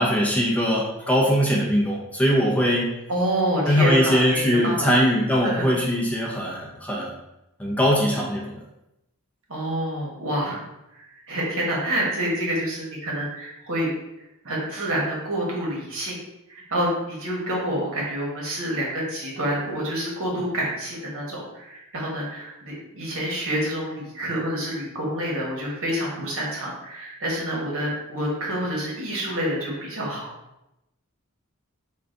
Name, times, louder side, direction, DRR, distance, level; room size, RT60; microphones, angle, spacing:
voice 1, 0.0-2.9 3.7-7.1 7.6-8.6, equal, 5° left, -4 dB, 0.6 m, -21 dB
voice 2, 3.1-4.9 5.4-5.7 9.5-10.6 10.9-13.9 14.4-16.2 16.5-30.3, right 1 dB, 65° right, -3 dB, 1.2 m, -28 dB
3.8 x 2.3 x 3.7 m, 0.91 s
head